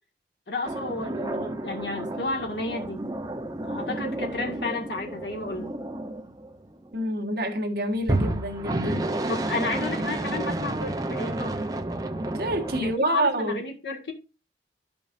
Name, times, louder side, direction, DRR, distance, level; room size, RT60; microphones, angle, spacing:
voice 1, 0.5-3.1 3.6-5.7 9.3-11.6 12.8-14.1, left 2 dB, 75° left, 1.8 m, -32 dB
sound 1, 0.6-7.0 8.0-12.9, right 1 dB, 20° right, 0.6 m, -31 dB
voice 2, 6.9-9.3 12.3-13.6, right 1 dB, 60° right, 1.4 m, -27 dB
13.0 x 5.3 x 2.5 m
head